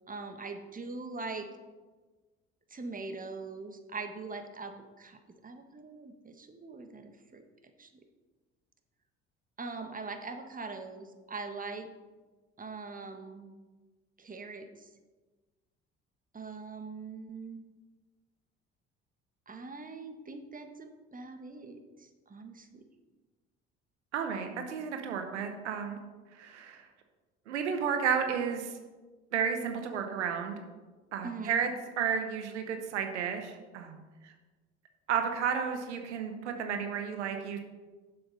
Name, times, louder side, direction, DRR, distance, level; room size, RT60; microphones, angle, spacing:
voice 1, 0.1-1.5 2.7-7.4 7.8-7.9 9.6-11.9 12.6-13.5 14.2-14.9 16.3-17.6 19.5-22.9 31.2-31.6, right 4 dB, 25° right, 6 dB, 1.4 m, -42 dB
voice 2, 24.1-26.0 26.4-26.9 27.5-28.7 29.3-30.6 31.1-31.7 32.0-34.3 35.1-37.6, right 7 dB, 90° right, 5 dB, 0.9 m, -32 dB
7.7 x 6.9 x 5.5 m, 1.3 s
hypercardioid pair, 55°, 34 cm